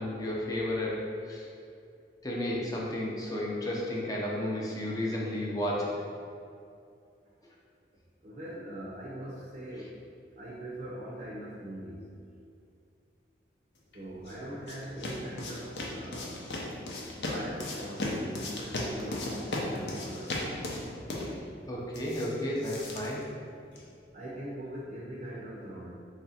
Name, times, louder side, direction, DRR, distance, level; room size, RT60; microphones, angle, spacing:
voice 1, 0.0-1.5 2.2-6.0 21.7-23.3, left 1 dB, 20° left, -4 dB, 0.5 m, -32 dB
voice 2, 8.2-10.0 10.4-12.1 13.9-16.5 17.1-20.6 24.1-25.9, right 1 dB, 50° right, -6 dB, 0.5 m, -41 dB
sound 1, 13.9-23.9, left 1 dB, 75° left, 0.6 m, -37 dB
3.1 x 2.5 x 4.1 m, 2.4 s
head